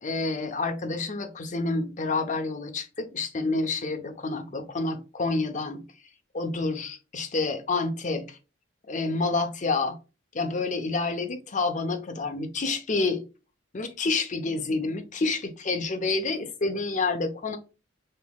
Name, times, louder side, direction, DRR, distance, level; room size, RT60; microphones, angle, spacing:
voice 1, 0.0-5.8 6.3-8.4 8.9-10.0 10.3-13.2 13.7-17.6, left 3 dB, 40° left, 0.7 m, -28 dB
5.3 x 3.0 x 2.2 m
head